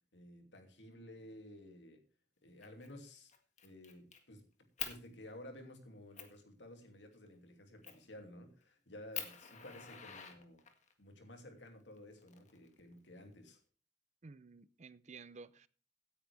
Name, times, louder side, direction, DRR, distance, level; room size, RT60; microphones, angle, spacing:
voice 1, 0.1-2.0 2.4-3.3 3.6-4.5 4.8-10.6 11.0-13.6, left 1 dB, 80° left, 2.6 m, -54 dB
Fire, 2.6-2.9 3.3-4.2 4.8-5.0 5.6-5.7 6.2-6.4 7.8-8.1 8.6-8.7 9.1-10.9 12.0-12.9, left 8 dB, 40° left, 1.8 m, -45 dB
voice 2, 14.2-15.7, right 4 dB, 40° right, 0.6 m, -53 dB
16.5 x 9.7 x 3.4 m
head